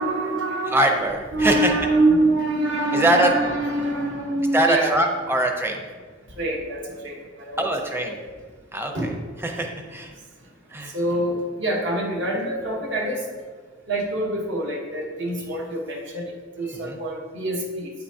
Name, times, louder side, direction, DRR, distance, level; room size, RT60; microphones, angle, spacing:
voice 1, 0.0-0.9 1.3-5.0 6.3-8.3 8.9-9.2 10.8-13.3 13.9-17.9, right 1 dB, 60° right, 0 dB, 1.2 m, -25 dB
voice 2, 0.7-1.7 2.9-3.3 4.5-5.8 7.6-8.2 8.7-8.9 9.4-10.1 10.7-10.9 16.8-17.0, right 1 dB, 10° right, 3 dB, 0.6 m, -22 dB
8.2 x 5.9 x 2.8 m, 1.5 s
head